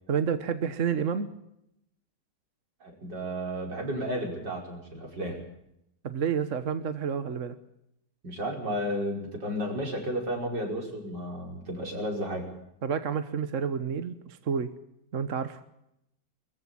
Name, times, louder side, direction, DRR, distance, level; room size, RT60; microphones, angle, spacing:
voice 1, 0.1-1.3 6.0-7.5 12.8-14.7 15.1-15.6, right 7 dB, 50° right, 11 dB, 1.4 m, -29 dB
voice 2, 2.8-5.4 8.2-12.5, equal, 75° right, 1 dB, 6.0 m, -33 dB
23.5 x 14.5 x 8.8 m, 0.81 s
omnidirectional pair, 1.9 m